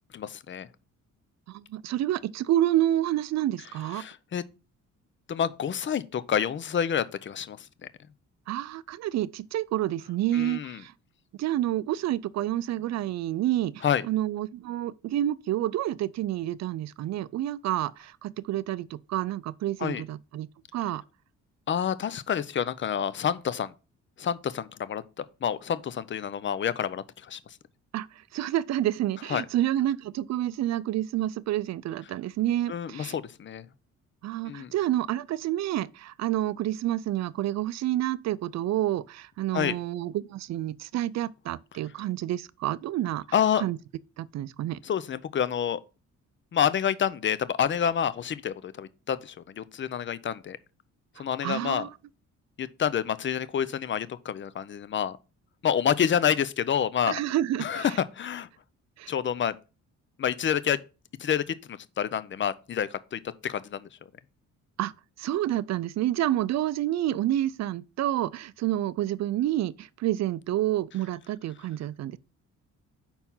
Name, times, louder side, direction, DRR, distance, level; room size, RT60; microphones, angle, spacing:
voice 1, 0.1-0.7 3.9-4.4 5.3-7.9 10.3-10.8 13.8-14.0 19.8-20.0 21.7-23.7 24.2-27.4 29.3-29.4 32.7-33.6 34.4-34.7 39.5-39.8 43.3-43.6 44.8-45.8 46.5-50.6 51.2-51.9 52.6-55.2 55.6-57.2 57.6-58.5 59.1-59.6 60.2-60.8 61.2-63.9, left 8 dB, 40° left, 0.6 m, -28 dB
voice 2, 1.5-4.0 8.5-10.9 11.4-21.0 27.9-28.1 28.3-33.1 34.2-43.2 43.6-43.8 44.2-44.8 51.4-51.9 57.1-57.9 59.0-59.1 64.8-64.9 65.2-72.2, right 13 dB, 60° right, 0.5 m, -29 dB
5.7 x 4.4 x 5.5 m
cardioid pair, 90°, 30 cm